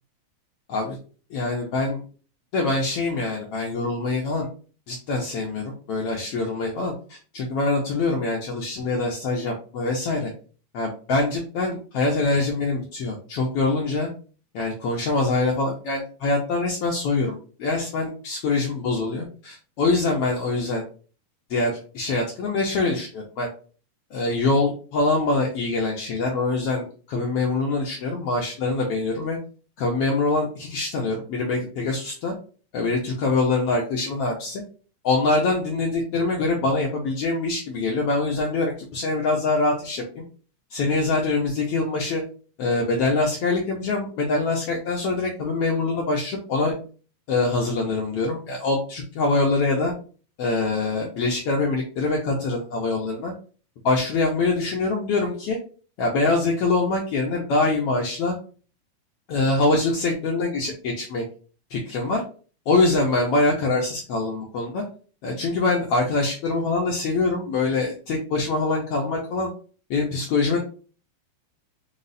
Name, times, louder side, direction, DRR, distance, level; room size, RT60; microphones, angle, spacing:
voice 1, 1.3-2.0 2.5-4.5 4.9-10.3 10.7-14.1 14.5-20.8 21.5-23.5 24.1-29.4 29.8-32.3 32.7-34.6 35.0-40.2 40.7-42.2 42.6-46.8 47.3-49.9 50.4-53.3 53.8-55.6 56.0-58.3 59.3-61.2 61.7-62.2 62.7-64.8 65.2-69.5 69.9-70.6, left 3 dB, 90° left, -1 dB, 1.3 m, -24 dB
5.2 x 2.0 x 3.9 m, 0.39 s
omnidirectional pair, 3.6 m